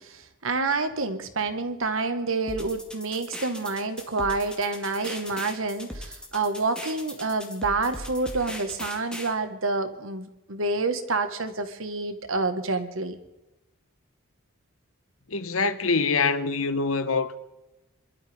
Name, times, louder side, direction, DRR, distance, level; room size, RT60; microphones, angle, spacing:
voice 1, 0.0-13.2, right 3 dB, 65° right, 1.7 m, -28 dB
sound 1, 2.5-9.3, left 1 dB, 5° left, 2.1 m, -39 dB
voice 2, 15.3-17.4, left 4 dB, 70° left, 1.1 m, -25 dB
27.5 x 12.5 x 3.7 m
head